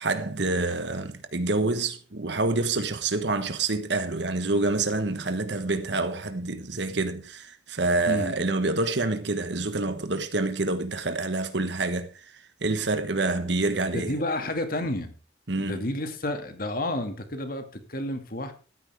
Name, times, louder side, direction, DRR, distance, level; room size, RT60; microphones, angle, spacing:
voice 1, 0.0-14.1 15.5-15.8, right 3 dB, 65° right, 1.3 m, -27 dB
voice 2, 13.9-15.1 15.6-18.5, left 1 dB, 50° left, 2.2 m, -30 dB
14.0 x 13.5 x 3.6 m
head